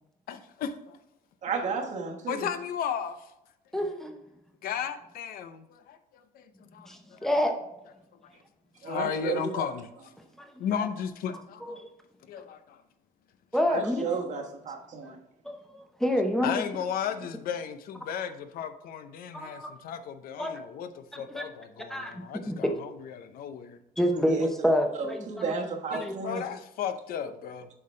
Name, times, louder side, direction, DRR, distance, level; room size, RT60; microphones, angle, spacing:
voice 1, 0.3-1.0 2.3-3.3 4.6-7.2 8.8-10.1 10.6-11.9 12.3-12.8 16.4-23.8 25.9-27.7, left 8 dB, 70° left, 0.7 m, -35 dB
voice 2, 1.4-2.5 8.8-9.7 13.6-15.2 24.3-24.5 25.0-26.4, right 5 dB, 50° right, 1.3 m, -33 dB
voice 3, 3.7-4.1 6.9-7.5 10.4-10.5 10.8-10.9 11.6-11.9 13.5-14.2 15.4-16.6 19.3-19.7 20.4-20.6 21.1-21.4 21.9-22.7 24.0-25.5 26.0-26.1, equal, 5° left, 0.8 m, -28 dB
7.7 x 5.7 x 3.2 m
cardioid pair, 165°, 16 cm